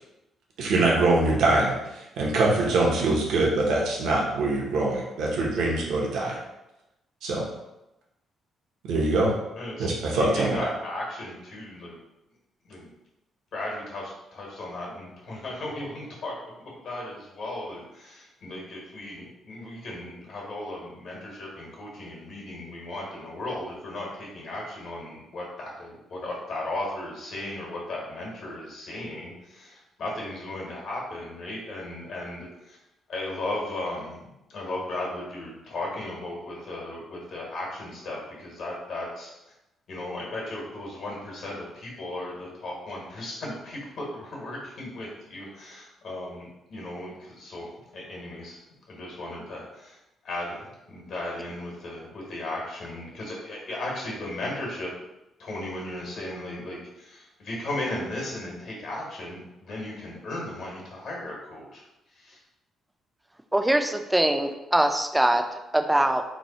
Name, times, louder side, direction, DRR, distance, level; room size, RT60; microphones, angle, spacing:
voice 1, 0.6-6.4 7.2-7.4 8.8-9.3 9.8-10.6, right 2 dB, 75° right, -2 dB, 0.8 m, -23 dB
voice 2, 9.5-9.9 10.1-12.0 12.6-12.9 13.5-32.8 33.1-39.3 39.9-47.7 47.9-48.6 48.9-50.0 50.2-54.9 55.4-61.8 62.1-62.4, left 1 dB, 65° left, -3 dB, 1.3 m, -36 dB
voice 3, 63.5-66.2, right 1 dB, 10° right, 6 dB, 0.3 m, -23 dB
3.1 x 2.2 x 4.0 m, 0.93 s
cardioid pair, 90°, 0 cm